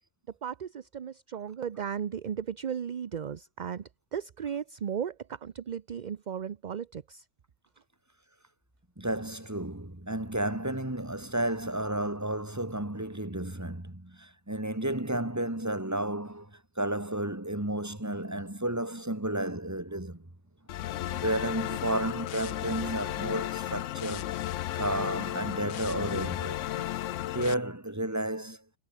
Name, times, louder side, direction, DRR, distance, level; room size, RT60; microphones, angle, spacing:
voice 1, 0.3-7.3, right 8 dB, 45° right, 0.7 m, -36 dB
voice 2, 9.0-20.2 21.1-24.4 24.7-26.6 27.3-28.6, right 1 dB, 15° right, 2.4 m, -32 dB
sound 1, 20.7-27.5, left 13 dB, 75° left, 0.9 m, -34 dB
omnidirectional pair, 1.3 m